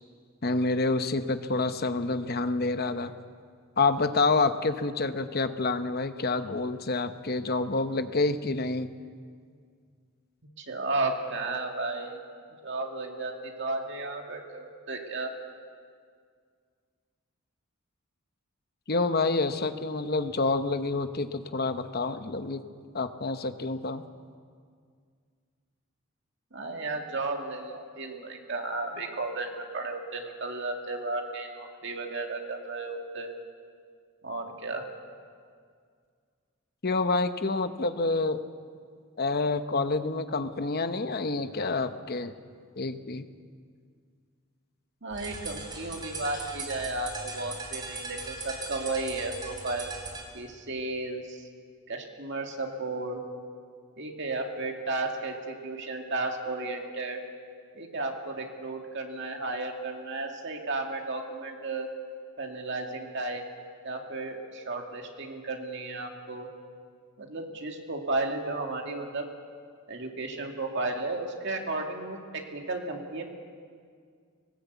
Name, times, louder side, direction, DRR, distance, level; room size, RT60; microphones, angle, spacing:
voice 1, 0.4-3.1 3.8-8.9 18.9-22.6 22.9-24.0 36.8-38.4 39.2-42.3 42.8-43.3, left 3 dB, 45° left, 9 dB, 0.9 m, -28 dB
voice 2, 10.6-12.2 12.6-15.3 26.5-33.3 34.2-34.8 45.0-49.9 50.3-51.4 51.9-53.2 54.0-57.2 57.7-61.9 62.4-63.4 63.8-66.5 67.2-69.3 69.9-73.2, right 2 dB, 55° right, 2 dB, 2.3 m, -34 dB
sound 1, 45.1-50.3, right 3 dB, 20° right, 3.1 m, -39 dB
19.0 x 17.5 x 8.3 m, 2.1 s
head